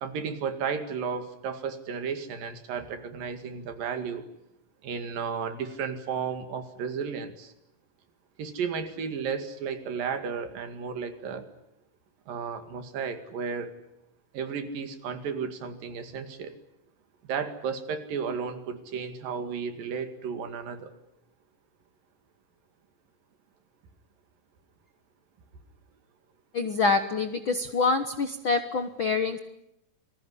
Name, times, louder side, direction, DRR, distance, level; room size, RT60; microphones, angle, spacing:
voice 1, 0.0-4.3 4.8-7.5 8.4-11.4 12.3-13.7 14.3-16.5 17.3-20.9, right 6 dB, 80° right, 8 dB, 3.8 m, -33 dB
voice 2, 26.5-29.4, left 4 dB, 60° left, 8 dB, 1.3 m, -26 dB
28.5 x 20.5 x 10.0 m, 0.84 s
omnidirectional pair, 4.0 m